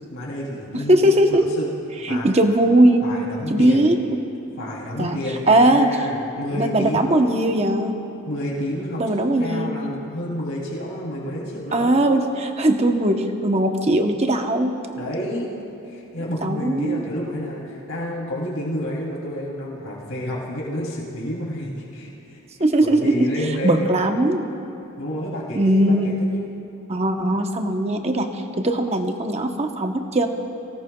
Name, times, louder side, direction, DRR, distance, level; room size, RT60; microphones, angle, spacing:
voice 1, 0.1-1.7 2.0-2.3 3.0-3.9 4.6-7.5 8.3-12.0 15.0-15.5 15.8-22.4 22.8-23.9 25.0-26.4, equal, 75° left, -5 dB, 3.0 m, -30 dB
voice 2, 0.7-1.5 2.0-3.1 3.5-4.0 5.0-5.2 5.5-6.0 6.5-7.9 9.0-9.8 11.7-14.7 16.4-17.0 22.6-23.3 23.6-24.5 25.6-26.2 26.9-30.3, right 1 dB, 30° right, 4 dB, 0.9 m, -19 dB
24.0 x 18.0 x 2.3 m, 3.0 s
head